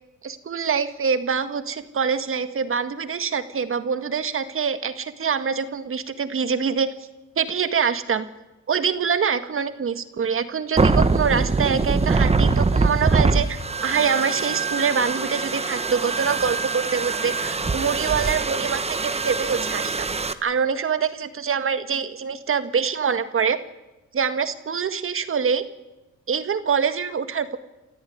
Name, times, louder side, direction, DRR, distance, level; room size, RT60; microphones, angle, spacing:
voice 1, 0.2-6.9 7.4-8.3 8.7-20.1 20.4-23.6 24.1-25.6 26.3-27.6, right 6 dB, 45° right, 10 dB, 1.9 m, -25 dB
sound 1, 10.8-20.3, right 4 dB, 20° right, 1.3 m, -23 dB
28.5 x 13.5 x 9.5 m, 1.0 s
cardioid pair, 90°, 30 cm